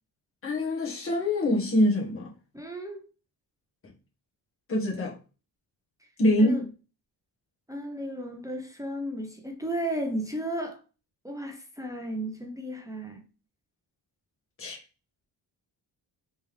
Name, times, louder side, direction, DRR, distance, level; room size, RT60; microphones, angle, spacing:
voice 1, 0.4-2.3 4.7-5.1 6.2-6.7 14.6-14.8, left 1 dB, 30° left, 1.2 m, -24 dB
voice 2, 2.5-3.1 6.4-6.6 7.7-10.8 11.2-13.2, right 1 dB, 10° right, 0.6 m, -34 dB
3.4 x 3.1 x 3.4 m
cardioid pair, 125°, 42 cm